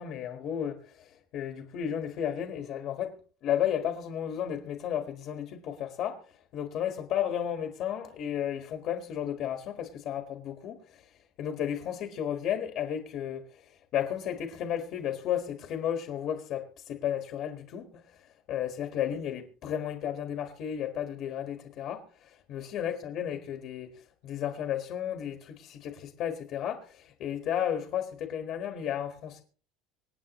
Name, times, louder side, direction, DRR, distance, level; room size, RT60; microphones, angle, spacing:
voice 1, 0.0-3.2 3.4-11.1 11.4-29.4, left 10 dB, 40° left, 1.5 m, -33 dB
25.5 x 8.8 x 3.1 m
cardioid pair, 180°, 0 cm